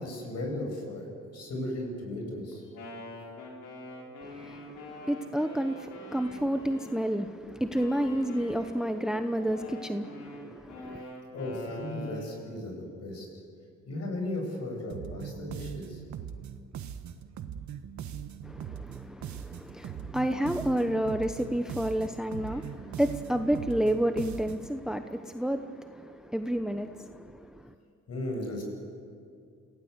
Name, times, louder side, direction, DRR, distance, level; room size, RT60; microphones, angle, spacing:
voice 1, 0.0-2.6 11.3-13.3 13.9-16.0 22.5-22.6 28.1-28.6, left 1 dB, 55° left, 8.0 m, -36 dB
Wind instrument woodwind instrument, 2.5-7.3 7.7-12.4, left 1 dB, 90° left, 5.0 m, -45 dB
voice 2, 4.2-11.0 18.4-27.7, right 1 dB, ahead, 0.9 m, -30 dB
sound 1, 14.9-24.8, right 8 dB, 70° right, 1.4 m, -41 dB
28.0 x 17.0 x 8.2 m
cardioid pair, 90°, 30 cm